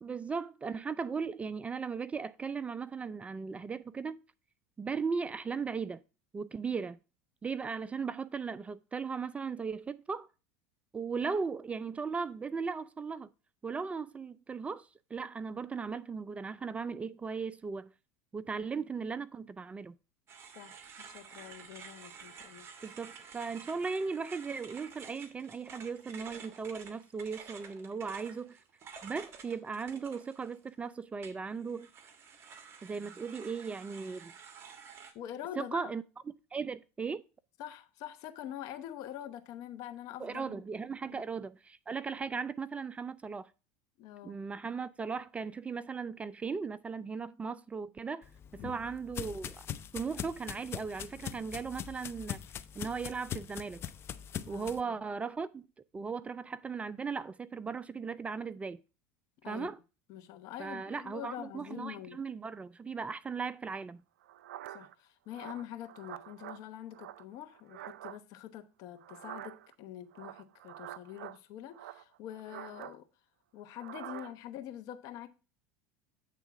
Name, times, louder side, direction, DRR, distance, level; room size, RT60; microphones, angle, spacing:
voice 1, 0.0-4.2 4.8-6.0 6.3-7.0 7.4-10.3 10.9-13.3 13.6-17.9 18.3-20.0 22.8-28.6 29.0-31.9 32.8-34.3 35.6-36.0 36.5-37.2 40.2-43.5 44.2-48.3 48.6-49.7 49.9-52.4 52.8-53.8 54.5-55.6 55.9-58.8 59.5-59.8 60.6-64.0, right 5 dB, 20° right, 0.4 m, -37 dB
sound 1, 20.3-30.7 31.2-35.1, right 6 dB, 35° right, 1.4 m, -51 dB
voice 2, 21.1-22.7 35.1-35.9 37.6-40.6 41.1-41.2 44.0-44.4 48.6-48.8 54.5-55.0 59.4-59.7 60.1-62.2 64.7-73.0 73.5-75.3, left 11 dB, 55° left, 0.9 m, -45 dB
sound 2, 48.2-54.8, left 9 dB, 35° left, 0.5 m, -42 dB
sound 3, 64.2-64.9 65.3-66.6 66.9-68.2 69.0-69.7 70.1-71.4 71.7-73.0 73.7-74.3, right 13 dB, 90° right, 0.4 m, -47 dB
8.3 x 3.6 x 6.0 m
supercardioid pair, 105°, 7 cm